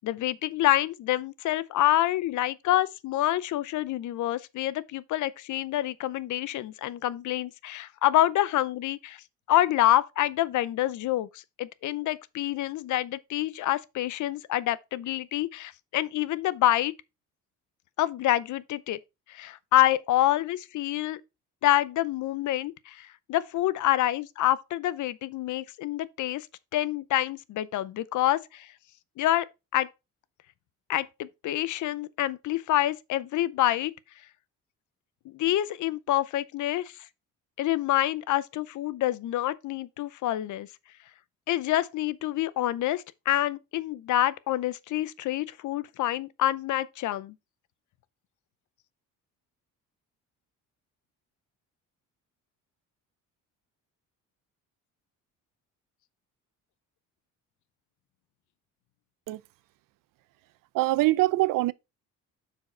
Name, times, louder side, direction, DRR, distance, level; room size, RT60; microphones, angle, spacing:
voice 1, 0.0-9.2 9.5-16.9 18.0-19.0 19.3-21.2 21.6-26.5 26.7-28.7 29.2-29.5 29.7-29.9 30.9-33.9 35.3-36.9 37.6-40.7 41.5-47.3, left 14 dB, 65° left, 0.6 m, -27 dB
voice 2, 60.7-61.7, right 18 dB, 75° right, 0.5 m, -23 dB
6.2 x 4.9 x 4.4 m
cardioid pair, 125°, 33 cm